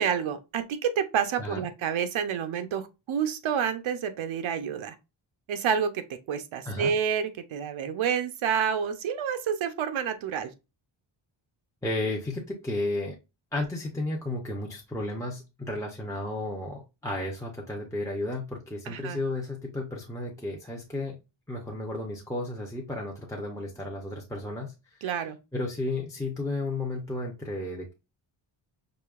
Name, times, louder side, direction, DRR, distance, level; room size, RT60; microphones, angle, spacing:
voice 1, 0.0-4.9 5.5-10.5 18.9-19.2 25.0-25.4, right 7 dB, 80° right, 0.7 m, -29 dB
voice 2, 11.8-13.2 13.5-21.2 21.5-25.0 25.5-27.9, left 2 dB, 5° left, 0.5 m, -33 dB
4.9 x 2.7 x 2.3 m
wide cardioid pair, 165°, 47 cm